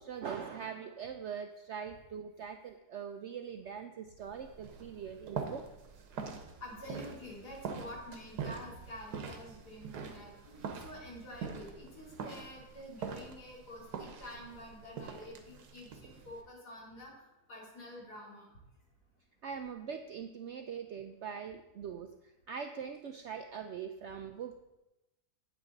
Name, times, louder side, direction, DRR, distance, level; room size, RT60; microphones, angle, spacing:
voice 1, 0.0-5.7 19.4-24.6, right 7 dB, 70° right, 7 dB, 0.6 m, -42 dB
sound 1, 4.2-16.4, right 5 dB, 90° right, 1.6 m, -44 dB
voice 2, 6.6-17.1 17.5-18.5, left 1 dB, 80° left, -3 dB, 3.2 m, -48 dB
9.0 x 8.5 x 3.9 m, 0.96 s
omnidirectional pair, 1.7 m